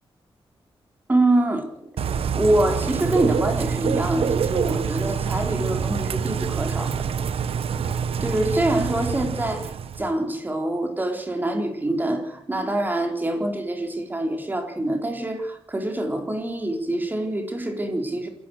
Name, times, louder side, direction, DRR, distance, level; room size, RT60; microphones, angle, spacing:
voice 1, 1.1-1.7 2.3-7.1 7.8-18.3, right 1 dB, 20° right, 4 dB, 4.3 m, -25 dB
Bird / Rain, 2.0-10.1, right 7 dB, 75° right, 1.2 m, -26 dB
28.0 x 15.0 x 6.6 m, 0.79 s
wide cardioid pair, 135°, 10 cm